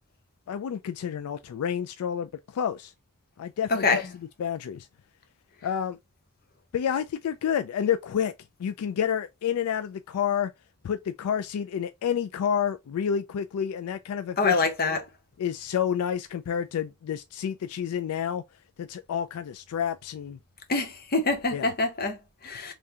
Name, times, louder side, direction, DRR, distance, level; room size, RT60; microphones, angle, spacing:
voice 1, 0.5-2.9 3.4-4.0 4.4-4.9 5.6-6.0 6.7-8.3 8.6-10.5 10.8-14.6 15.4-18.4 18.8-20.4 21.5-21.7, left 8 dB, 80° left, 0.3 m, -29 dB
voice 2, 3.7-4.1 14.4-15.1 20.7-22.7, left 3 dB, 45° left, 0.8 m, -25 dB
3.6 x 3.2 x 2.7 m
head